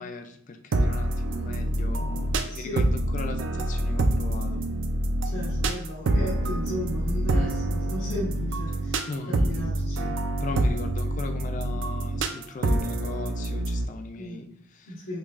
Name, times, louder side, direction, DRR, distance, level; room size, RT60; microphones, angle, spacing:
voice 1, 0.0-4.6 7.3-7.6 9.1-9.7 10.4-15.0, left 3 dB, 35° left, 6 dB, 0.3 m, -38 dB
sound 1, 0.7-13.8, right 1 dB, 65° right, 0.4 m, -26 dB
voice 2, 2.5-2.8 5.2-10.2 14.2-14.4 14.9-15.2, equal, 85° left, -8 dB, 1.2 m, -35 dB
5.3 x 2.3 x 2.4 m, 0.69 s
head